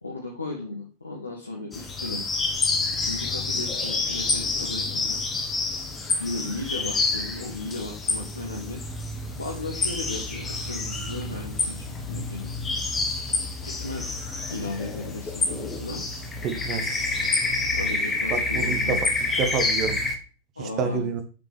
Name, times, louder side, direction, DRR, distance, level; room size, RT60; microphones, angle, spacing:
voice 1, 0.0-2.2 3.0-5.2 6.2-8.8 9.4-12.5 13.6-14.1 14.5-16.0 17.7-19.0 20.6-21.0, left 2 dB, 80° left, -1 dB, 1.4 m, -35 dB
sound 1, 1.7-20.2, left 3 dB, 20° left, 1.5 m, -28 dB
voice 2, 16.4-16.9 18.3-19.0 19.4-20.0 20.6-21.2, right 5 dB, 35° right, 7 dB, 1.5 m, -28 dB
7.7 x 6.0 x 3.5 m, 0.38 s
figure-of-eight pair, 90°, 0 cm